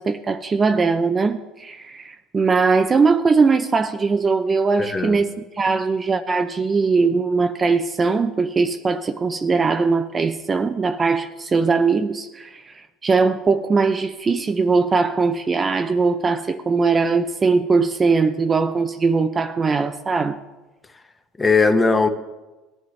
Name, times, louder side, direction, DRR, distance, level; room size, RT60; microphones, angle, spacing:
voice 1, 0.0-12.7 13.0-20.4, right 4 dB, 20° right, 0.5 m, -20 dB
voice 2, 4.8-5.2 21.4-22.1, left 4 dB, 15° left, 0.9 m, -18 dB
17.0 x 10.5 x 3.2 m
cardioid pair, 130°, 0 cm